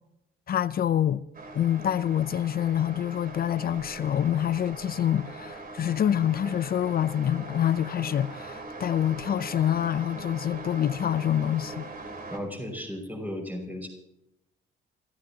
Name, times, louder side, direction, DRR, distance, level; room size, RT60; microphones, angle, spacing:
voice 1, 0.5-1.2 1.5-11.9, left 10 dB, 50° left, 0.5 m, -26 dB
sound 1, 1.3-12.4, right 2 dB, 45° right, 3.3 m, -41 dB
voice 2, 12.3-13.9, left 1 dB, 10° right, 5.7 m, -35 dB
26.5 x 15.0 x 2.9 m
cardioid pair, 90°, 20 cm